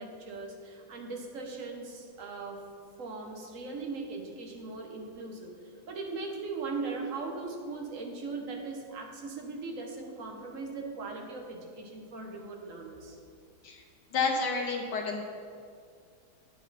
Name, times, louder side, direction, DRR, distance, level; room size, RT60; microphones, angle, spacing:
voice 1, 0.0-2.6 3.0-5.5 5.9-13.2, right 3 dB, 45° right, 2 dB, 1.2 m, -39 dB
voice 2, 14.1-15.3, left 4 dB, 65° left, 2 dB, 1.3 m, -30 dB
9.5 x 8.2 x 4.1 m, 2.3 s
omnidirectional pair, 2.3 m